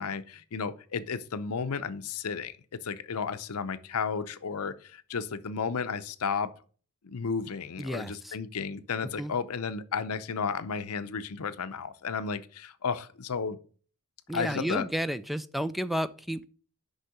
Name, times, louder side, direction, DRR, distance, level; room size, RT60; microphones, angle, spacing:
voice 1, 0.0-2.5 2.8-6.5 7.0-13.6 14.3-14.9, left 5 dB, 80° left, 0.6 m, -33 dB
voice 2, 7.8-8.3 9.2-9.3 14.3-16.4, equal, ahead, 0.3 m, -32 dB
6.5 x 5.5 x 5.9 m
head